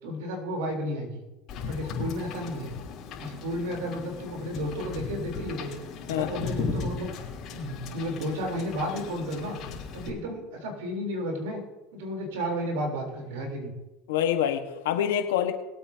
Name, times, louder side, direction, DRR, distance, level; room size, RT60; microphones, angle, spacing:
voice 1, 0.0-1.2 1.7-2.7 3.2-5.7 6.1-7.1 7.5-9.6 9.9-11.6 11.9-13.7, equal, 85° right, 1 dB, 3.6 m, -32 dB
Wind / Boat Water vehicle, 1.5-10.1, left 5 dB, 55° left, 3.2 m, -37 dB
voice 2, 6.1-6.5 14.1-15.5, left 10 dB, 90° left, 6 dB, 1.4 m, -26 dB
21.5 x 8.6 x 2.8 m, 1.0 s
supercardioid pair, 105°, 0 cm